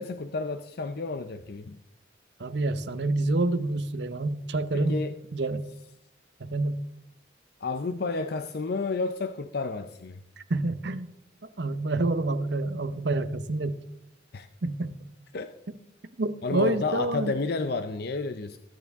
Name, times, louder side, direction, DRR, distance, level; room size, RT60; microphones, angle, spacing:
voice 1, 0.0-1.8 4.7-5.1 7.6-10.2 14.3-14.5 15.3-15.5 16.4-18.6, left 3 dB, 55° left, 9 dB, 0.6 m, -31 dB
voice 2, 2.4-5.0 5.3-5.6 6.4-6.8 10.5-11.1 11.6-13.8 14.6-15.0 16.2-17.3, right 2 dB, 60° right, 11 dB, 0.9 m, -27 dB
22.0 x 9.5 x 3.6 m, 0.78 s
head